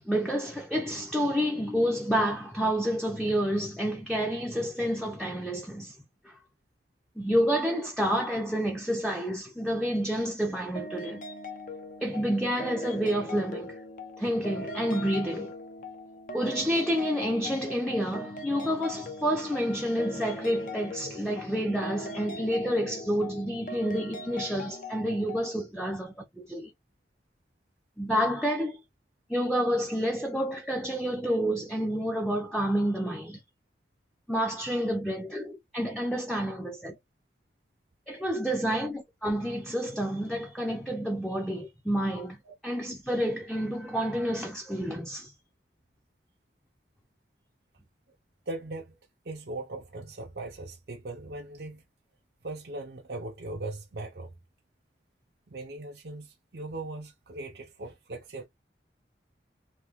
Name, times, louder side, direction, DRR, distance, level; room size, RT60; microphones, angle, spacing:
voice 1, 0.1-5.9 7.2-11.2 12.0-13.8 14.2-15.5 16.3-26.7 28.0-28.8 29.3-33.4 34.3-37.0 38.1-42.4 42.6-45.3, equal, ahead, 0.5 m, -29 dB
sound 1, 10.8-25.5, left 1 dB, 50° left, 0.6 m, -41 dB
voice 2, 48.5-49.0 49.2-51.9 52.4-54.3 55.5-58.5, right 2 dB, 60° right, 0.6 m, -39 dB
3.4 x 2.3 x 3.4 m
head